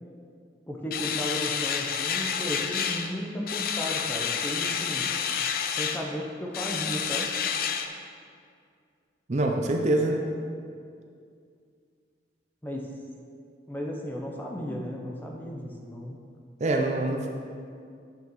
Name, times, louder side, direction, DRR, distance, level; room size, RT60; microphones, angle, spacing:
voice 1, 0.7-5.1 5.7-7.3 12.6-12.9 13.7-16.1, equal, 10° left, -1 dB, 0.6 m, -34 dB
sound 1, 0.9-3.1 3.5-6.0 6.5-7.9, left 7 dB, 55° left, 0.4 m, -29 dB
voice 2, 9.3-10.2 16.6-17.3, right 2 dB, 40° right, 2 dB, 0.5 m, -25 dB
8.9 x 5.8 x 3.0 m, 2.3 s
head